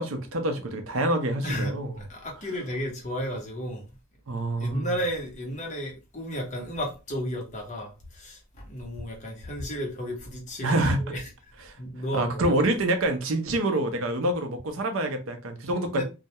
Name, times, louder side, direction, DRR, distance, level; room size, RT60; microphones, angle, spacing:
voice 1, 0.0-1.9 4.3-4.9 10.6-11.0 11.7-11.8 12.1-16.0, right 1 dB, 65° right, 0.5 m, -26 dB
voice 2, 1.4-3.9 4.6-11.3 11.8-12.4 15.9-16.0, equal, 35° left, 0.7 m, -33 dB
2.2 x 2.1 x 2.7 m
head